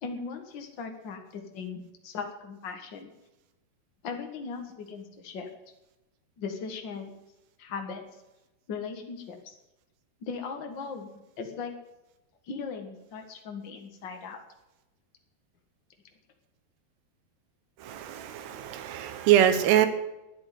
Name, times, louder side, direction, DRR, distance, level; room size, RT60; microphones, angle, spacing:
voice 1, 0.0-3.1 4.0-5.5 6.4-7.1 7.6-8.0 8.7-9.6 10.2-11.1 11.4-11.7 12.4-14.4, left 5 dB, 70° left, 4 dB, 1.1 m, -38 dB
voice 2, 17.8-19.9, right 11 dB, 85° right, 10 dB, 3.3 m, -23 dB
10.5 x 10.0 x 9.4 m, 0.96 s
omnidirectional pair, 4.7 m